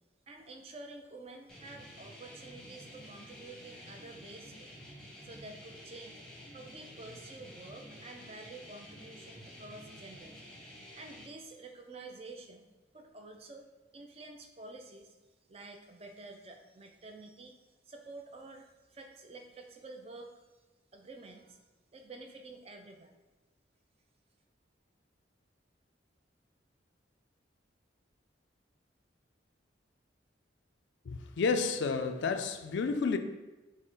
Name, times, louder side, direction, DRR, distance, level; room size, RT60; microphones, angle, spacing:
voice 1, 0.3-4.7 5.2-6.2 6.5-10.4 10.9-12.7 12.9-13.7 13.9-15.2 15.5-17.6 17.8-20.4 20.9-21.6 21.9-23.2, right 2 dB, 30° right, 0.4 m, -49 dB
sound 1, 1.5-11.3, equal, 5° left, 0.8 m, -50 dB
voice 2, 31.1-33.2, left 4 dB, 70° left, 0.4 m, -31 dB
6.2 x 2.1 x 3.7 m
head